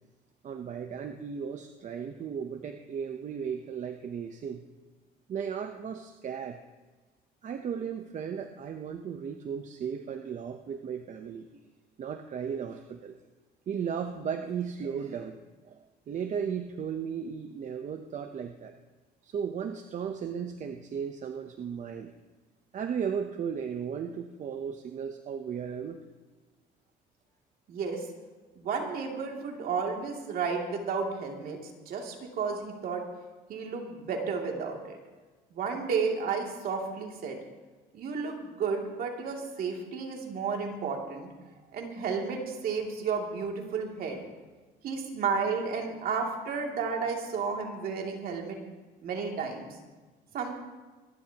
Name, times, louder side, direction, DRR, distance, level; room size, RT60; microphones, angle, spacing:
voice 1, 0.4-4.6 5.3-6.6 7.4-11.6 12.0-13.2 13.7-15.4 15.6-18.8 19.2-22.1 22.7-26.0, right 7 dB, 45° right, 6 dB, 0.9 m, -35 dB
voice 2, 27.7-28.0 28.6-33.0 33.5-35.0 35.5-37.4 37.9-41.3 41.7-44.2 44.8-48.6 49.0-49.7 50.3-50.5, right 5 dB, 60° right, 1 dB, 2.7 m, -32 dB
25.0 x 11.5 x 3.0 m, 1.3 s
cardioid pair, 110°, 17 cm